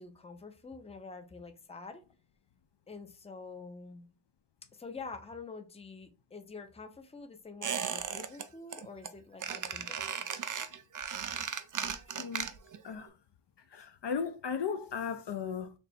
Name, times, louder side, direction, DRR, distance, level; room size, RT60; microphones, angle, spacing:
voice 1, 0.0-2.0 2.9-4.1 4.7-10.3, left 4 dB, 15° left, 0.5 m, -47 dB
Squeak, 7.6-8.4 8.7-9.1 9.4-12.8 13.1-13.2, right 7 dB, 40° right, 0.4 m, -36 dB
voice 2, 13.7-15.7, left 6 dB, 60° left, 0.5 m, -36 dB
3.3 x 2.0 x 4.1 m
cardioid pair, 40°, 49 cm